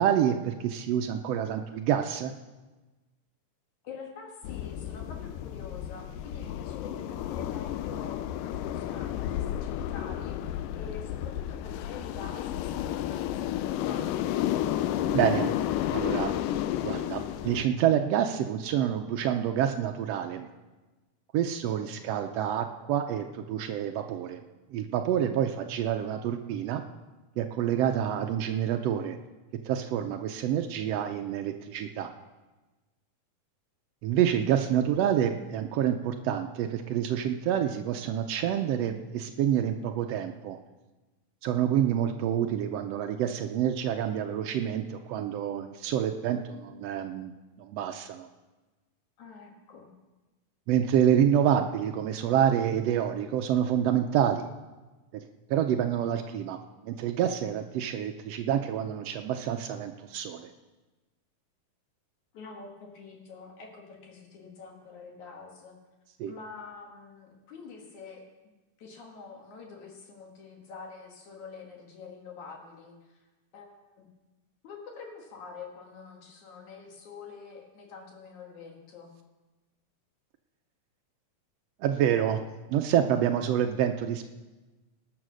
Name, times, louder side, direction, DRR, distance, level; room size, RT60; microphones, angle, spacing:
voice 1, 0.0-2.3 15.1-15.5 15.9-16.3 16.8-20.5 21.3-24.4 24.7-26.8 27.4-29.2 29.6-32.1 34.0-40.6 41.4-48.3 50.7-54.5 55.1-56.6 56.8-60.5 66.2-66.3 81.8-82.4 82.7-84.2, right 9 dB, 90° right, 5 dB, 1.4 m, -27 dB
voice 2, 3.8-14.4 21.7-22.1 49.2-49.9 62.3-65.8 66.3-68.3 68.8-73.3 73.5-74.1 74.6-79.1, left 5 dB, 70° left, 1 dB, 3.2 m, -46 dB
sound 1, 4.4-17.7, left 12 dB, 90° left, 2.2 m, -32 dB
19.5 x 6.7 x 6.2 m, 1.2 s
omnidirectional pair, 3.6 m